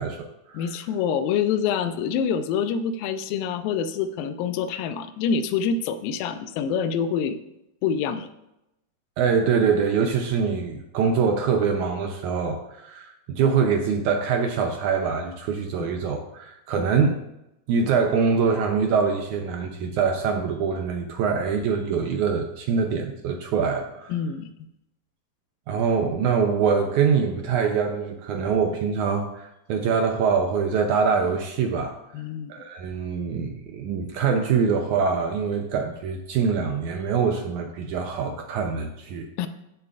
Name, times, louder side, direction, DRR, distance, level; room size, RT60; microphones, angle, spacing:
voice 1, 0.0-0.7 9.2-17.2 17.7-24.1 25.7-31.9 32.5-39.3, right 6 dB, 80° right, 4 dB, 1.8 m, -24 dB
voice 2, 0.5-7.4 7.8-8.3 16.8-16.9 24.1-24.5 32.1-32.5 39.4-39.5, left 7 dB, 85° left, 11 dB, 2.3 m, -26 dB
15.0 x 6.8 x 2.4 m, 0.88 s
omnidirectional pair, 4.1 m